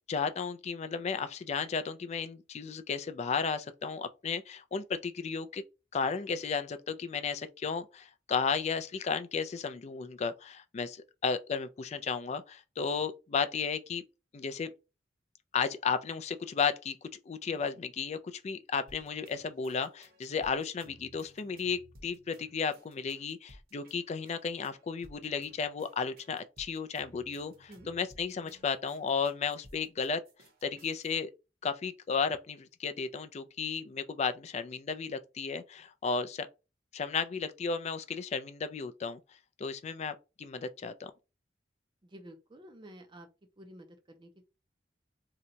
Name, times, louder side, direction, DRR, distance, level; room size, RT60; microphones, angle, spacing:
voice 1, 0.1-5.6 5.9-14.0 14.3-14.7 15.5-30.2 30.6-31.3 31.6-36.5 36.9-39.2 39.6-41.1, left 5 dB, 35° left, 0.3 m, -34 dB
sound 1, 18.9-31.1, right 1 dB, 55° right, 0.8 m, -58 dB
voice 2, 42.0-43.3 43.6-44.5, right 1 dB, 25° right, 0.5 m, -51 dB
2.8 x 2.2 x 3.8 m
head